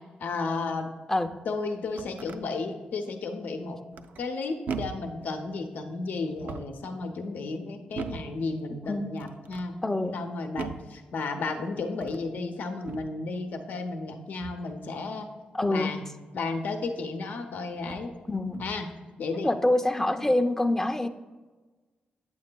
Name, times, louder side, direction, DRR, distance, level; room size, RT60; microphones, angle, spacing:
voice 1, 0.2-0.9 1.5-3.8 4.2-9.8 10.1-15.3 15.7-16.1 16.3-18.1 18.6-18.9 19.2-19.5 20.1-20.3, left 3 dB, 75° left, 5 dB, 0.6 m, -33 dB
voice 2, 1.1-1.5 8.9-9.1 9.8-10.2 15.5-15.9 18.3-18.6 19.4-21.1, left 1 dB, 15° left, 7 dB, 0.5 m, -25 dB
sound 1, 1.7-2.4 3.9-4.3 4.7-5.2 6.3-6.9 7.9-8.4 9.2-9.7 10.6-11.0 11.9-12.3 12.8-13.2 14.4-14.7 16.8-16.9 17.8-18.1 18.5-18.9, right 5 dB, 70° right, 0.4 m, -39 dB
8.5 x 7.1 x 2.2 m, 1.3 s
cardioid pair, 60°, 3 cm